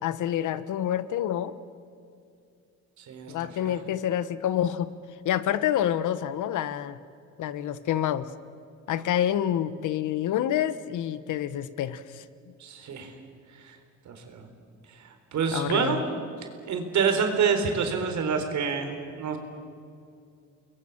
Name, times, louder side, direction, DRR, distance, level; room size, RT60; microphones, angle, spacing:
voice 1, 0.0-1.5 3.3-4.9 5.2-7.0 7.4-8.3 8.9-12.5 15.5-16.0, left 11 dB, 80° left, 15 dB, 1.2 m, -28 dB
voice 2, 3.0-3.7 12.6-13.1 13.6-13.7 14.1-14.5 15.0-16.0 16.6-19.4, right 6 dB, 70° right, 5 dB, 4.2 m, -27 dB
30.0 x 21.0 x 7.3 m, 2.4 s
cardioid pair, 90°, 30 cm